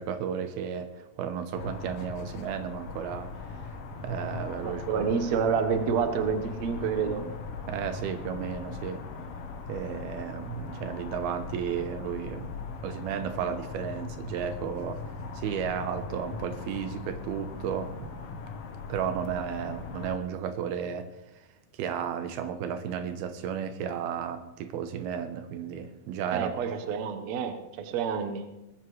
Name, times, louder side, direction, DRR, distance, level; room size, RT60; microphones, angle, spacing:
voice 1, 0.0-3.7 4.0-5.1 7.7-9.0 9.7-12.5 12.8-15.0 15.3-18.4 18.9-21.1 21.8-26.5, right 8 dB, 80° right, 8 dB, 2.8 m, -33 dB
sound 1, 1.6-20.2, left 4 dB, 90° left, 1.2 m, -39 dB
voice 2, 4.6-7.3 26.3-28.4, right 6 dB, 60° right, 7 dB, 1.9 m, -28 dB
21.0 x 13.0 x 3.3 m, 0.95 s
omnidirectional pair, 4.5 m